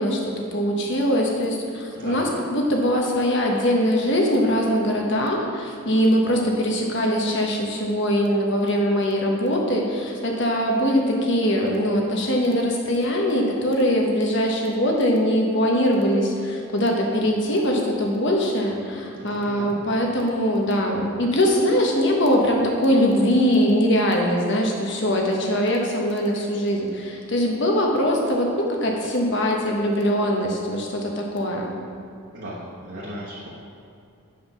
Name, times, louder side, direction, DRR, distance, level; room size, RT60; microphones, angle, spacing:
voice 1, 0.0-31.7, equal, 55° left, 0 dB, 1.2 m, -22 dB
voice 2, 1.9-2.3 19.2-19.8 32.3-33.5, equal, 55° right, -8 dB, 1.3 m, -36 dB
8.0 x 5.0 x 5.8 m, 2.6 s
head